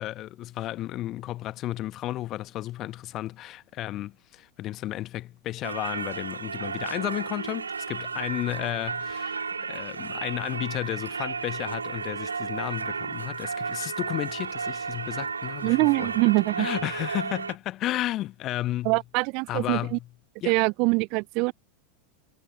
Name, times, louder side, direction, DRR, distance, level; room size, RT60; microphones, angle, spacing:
voice 1, 0.0-16.3 16.6-19.0 19.5-20.1 20.4-20.5, left 15 dB, 35° left, 1.3 m, -33 dB
Singing / Church bell, 5.6-17.6, right 5 dB, 75° right, 3.6 m, -33 dB
voice 2, 15.6-16.7 18.8-20.0 20.4-21.5, right 29 dB, 45° right, 0.7 m, -24 dB
figure-of-eight pair, 90°, 0 cm